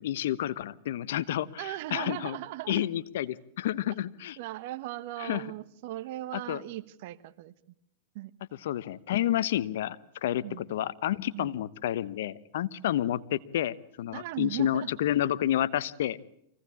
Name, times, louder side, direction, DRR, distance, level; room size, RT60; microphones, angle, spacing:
voice 1, 0.0-2.4 2.7-4.4 5.2-5.4 6.3-6.6 8.6-16.2, left 12 dB, 70° left, 16 dB, 1.0 m, -30 dB
voice 2, 1.6-2.9 4.4-7.5 8.1-8.3 10.4-10.6 11.3-11.5 14.1-14.9, right 16 dB, 60° right, 15 dB, 1.2 m, -38 dB
24.5 x 17.5 x 8.4 m, 0.75 s
hypercardioid pair, 125°, 0 cm